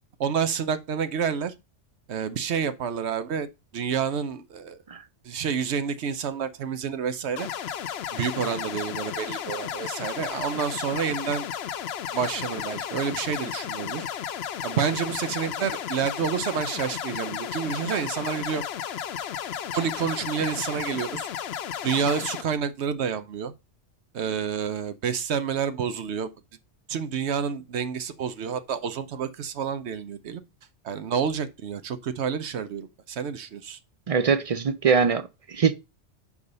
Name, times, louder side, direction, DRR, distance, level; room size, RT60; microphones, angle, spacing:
voice 1, 0.2-1.5 2.1-3.5 3.7-4.8 5.2-7.5 8.1-11.5 12.1-14.1 14.6-18.6 19.7-21.2 21.8-23.5 24.1-26.3 26.9-30.4 30.8-33.8, right 7 dB, 75° right, 1.0 m, -29 dB
sound 1, 7.4-22.4, left 9 dB, 70° left, 0.8 m, -33 dB
voice 2, 34.1-35.7, right 6 dB, 55° right, 0.4 m, -22 dB
4.9 x 4.9 x 5.2 m
omnidirectional pair, 1.2 m